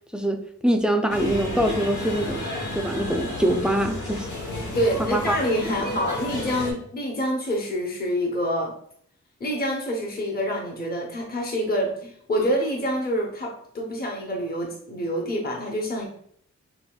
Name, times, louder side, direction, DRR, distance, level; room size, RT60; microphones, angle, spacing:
voice 1, 0.1-2.5 2.7-4.3 5.0-5.4, right 1 dB, 5° right, 5 dB, 0.4 m, -24 dB
sound 1, 1.1-6.7, left 1 dB, 90° left, 1.0 m, -32 dB
voice 2, 4.6-8.7 9.4-16.1, equal, 30° left, 0 dB, 0.7 m, -27 dB
5.5 x 2.2 x 2.2 m, 0.65 s
wide cardioid pair, 105°, 29 cm